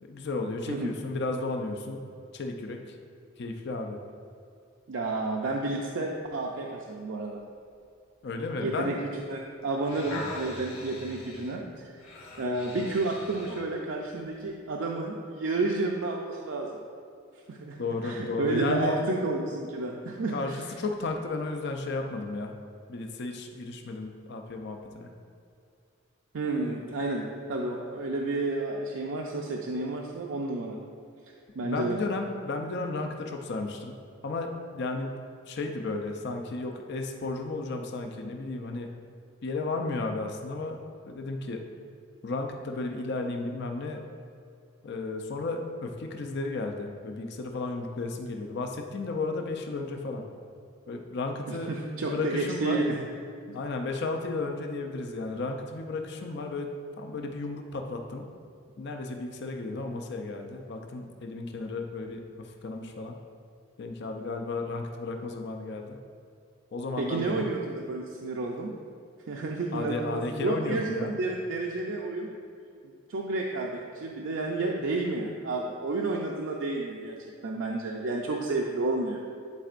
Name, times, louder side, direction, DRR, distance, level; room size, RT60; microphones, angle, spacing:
voice 1, 0.1-2.0 2.3-2.9 3.4-4.0 8.2-9.0 17.8-19.1 20.3-22.5 22.9-25.1 31.6-33.9 34.2-35.2 35.5-38.9 39.4-40.8 41.1-41.6 42.2-44.0 44.8-50.2 50.9-52.8 53.5-58.3 58.8-63.2 63.8-66.0 66.7-67.5 69.7-71.1, left 3 dB, 55° left, 4 dB, 0.5 m, -33 dB
voice 2, 4.9-7.4 8.6-9.0 9.3-11.9 12.4-16.8 17.5-17.8 18.0-20.6 26.3-30.8 31.6-32.0 51.5-53.0 53.5-53.6 67.0-68.7 69.3-72.3 73.1-77.2 77.4-79.2, right 2 dB, 65° right, -1 dB, 0.5 m, -31 dB
sound 1, 9.6-13.7 14.3-14.5, left 1 dB, 85° left, 1.2 m, -42 dB
10.5 x 4.4 x 2.5 m, 2.4 s
head